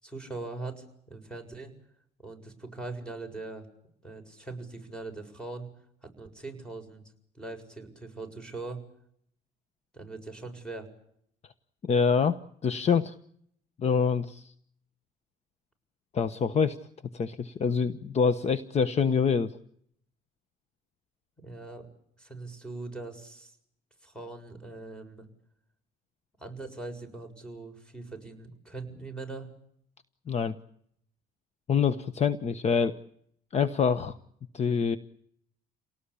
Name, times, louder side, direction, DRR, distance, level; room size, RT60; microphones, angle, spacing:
voice 1, 0.0-1.7 2.2-3.7 4.0-5.7 6.0-7.0 7.3-8.8 9.9-10.9 21.4-21.9 22.2-23.6 24.0-25.3 26.4-29.5, right 3 dB, 5° left, 7 dB, 7.1 m, -41 dB
voice 2, 11.8-13.1 13.8-14.5 16.1-16.8 17.1-19.5 30.3-30.6 31.7-32.9 33.5-34.2 34.5-35.0, left 6 dB, 40° left, 13 dB, 1.2 m, -26 dB
29.0 x 18.5 x 8.6 m, 0.69 s
cardioid pair, 110°, 17 cm